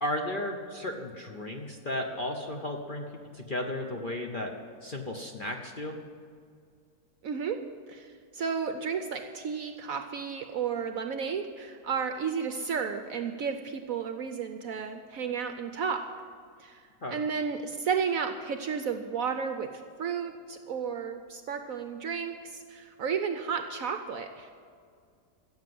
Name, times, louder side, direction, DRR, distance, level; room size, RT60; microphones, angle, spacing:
voice 1, 0.0-3.1 3.3-4.5 4.8-6.0 17.0-17.2, left 1 dB, 40° left, 2 dB, 0.8 m, -34 dB
voice 2, 7.2-7.6 7.9-16.0 16.6-16.8 17.1-24.5, right 6 dB, 65° right, 7 dB, 0.9 m, -33 dB
15.0 x 7.4 x 7.7 m, 2.2 s
omnidirectional pair, 1.9 m